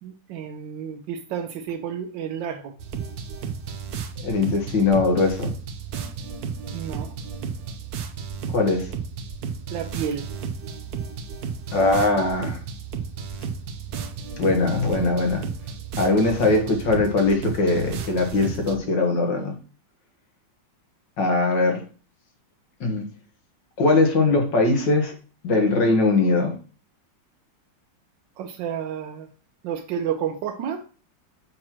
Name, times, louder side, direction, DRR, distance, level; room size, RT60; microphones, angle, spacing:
voice 1, 0.0-2.7 6.7-7.1 9.7-10.3 28.4-29.3 29.6-30.8, right 8 dB, 85° right, 6 dB, 1.3 m, -30 dB
sound 1, 2.8-18.8, right 6 dB, 60° right, 1.2 m, -33 dB
voice 2, 4.2-5.5 8.5-8.9 11.7-12.6 14.4-15.5 16.0-19.5 21.2-21.8 22.8-23.1 23.8-25.2 25.4-26.5, left 3 dB, 85° left, 3 dB, 2.1 m, -21 dB
7.5 x 3.0 x 6.0 m, 0.38 s
omnidirectional pair, 1.9 m